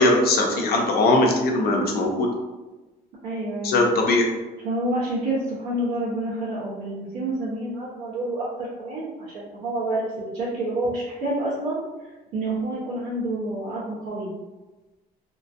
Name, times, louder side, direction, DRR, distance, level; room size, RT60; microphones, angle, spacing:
voice 1, 0.0-2.3 3.6-4.3, left 2 dB, 65° left, 1 dB, 0.7 m, -20 dB
voice 2, 3.2-3.8 4.6-14.3, right 1 dB, 90° right, -9 dB, 1.0 m, -28 dB
2.9 x 2.6 x 2.5 m, 1.1 s
cardioid pair, 110°, 17 cm